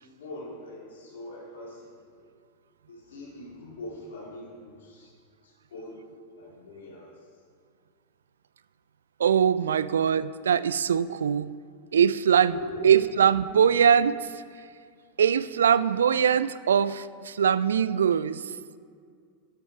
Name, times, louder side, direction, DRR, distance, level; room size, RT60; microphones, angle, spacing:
voice 1, 0.0-1.9 2.2-2.3 2.9-5.1 5.7-6.0 6.4-7.1 12.5-12.9, left 1 dB, 60° left, -3 dB, 2.7 m, -41 dB
voice 2, 9.2-11.6 11.9-12.6 12.8-14.4 15.2-18.5, right 8 dB, 65° right, 16 dB, 0.3 m, -22 dB
11.5 x 8.0 x 4.6 m, 2.1 s
figure-of-eight pair, 90°, 0 cm